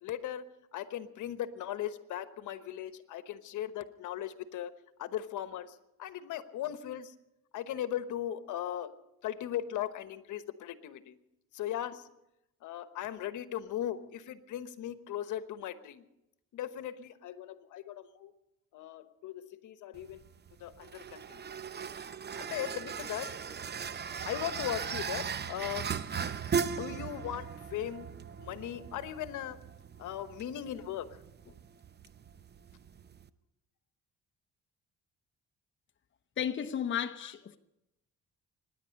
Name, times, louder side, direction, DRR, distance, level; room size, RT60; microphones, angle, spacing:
voice 1, 0.0-0.5 0.7-4.7 5.0-7.1 7.5-8.9 9.2-11.2 11.5-12.0 12.6-16.0 16.5-18.3 18.7-20.2 20.6-21.4 22.4-23.3 24.2-25.9 26.6-28.1 28.4-29.6 30.0-31.1 31.5-31.6 37.2-37.3, left 11 dB, 80° left, 1.1 m, -38 dB
sound 1, 19.9-33.3, right 6 dB, 35° right, 0.7 m, -38 dB
voice 2, 36.4-37.6, left 9 dB, 40° left, 0.9 m, -33 dB
25.0 x 10.5 x 5.3 m
cardioid pair, 90°, 30 cm